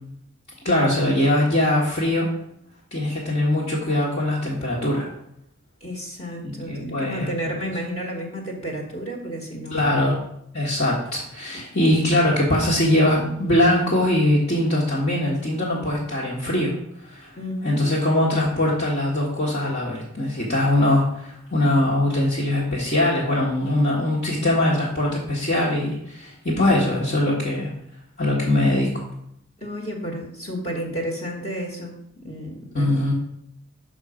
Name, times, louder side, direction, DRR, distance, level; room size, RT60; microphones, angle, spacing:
voice 1, 0.6-2.3 2.9-5.1 6.4-7.5 9.7-10.1 10.5-16.7 17.0-17.3 17.6-27.7 28.2-28.9 32.7-33.1, left 1 dB, 50° left, -7 dB, 1.5 m, -22 dB
voice 2, 5.8-10.0 11.5-11.6 17.4-17.9 29.6-31.9 32.2-33.1, equal, 35° left, 0 dB, 1.3 m, -32 dB
6.3 x 5.4 x 4.9 m, 0.73 s
head